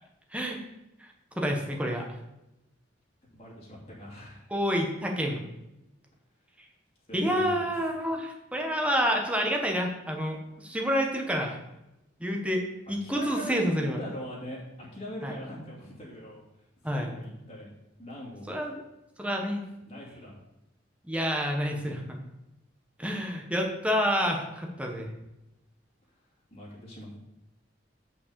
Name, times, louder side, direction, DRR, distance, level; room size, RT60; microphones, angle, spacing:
voice 1, 1.0-2.1 4.5-5.4 7.1-11.6 12.2-14.0 15.2-15.3 16.8-17.1 18.5-18.8 19.2-19.6 21.0-22.2 23.0-25.1, equal, 5° right, 1 dB, 1.3 m, -28 dB
voice 2, 3.3-4.5 7.1-7.6 13.0-16.4 16.8-17.7 18.0-18.5 19.9-20.4 26.5-27.2, left 1 dB, 35° left, -5 dB, 2.7 m, -41 dB
6.3 x 5.5 x 6.9 m, 0.91 s
head